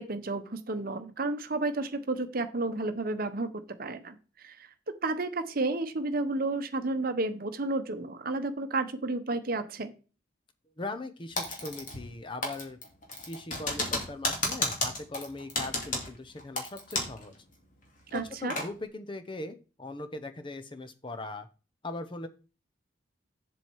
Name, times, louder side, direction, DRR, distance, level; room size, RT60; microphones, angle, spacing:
voice 1, 0.0-3.5 3.8-4.7 5.0-9.9 18.1-18.6, right 2 dB, 45° right, 10 dB, 0.9 m, -31 dB
voice 2, 10.8-12.8 13.2-17.3 18.1-21.5 21.8-22.3, left 2 dB, 25° left, 8 dB, 0.7 m, -40 dB
Typing, 11.4-12.2 12.4-17.2 17.5-17.6 18.1-18.7, left 2 dB, 40° left, 2.5 m, -32 dB
7.6 x 7.1 x 4.6 m, 0.35 s
head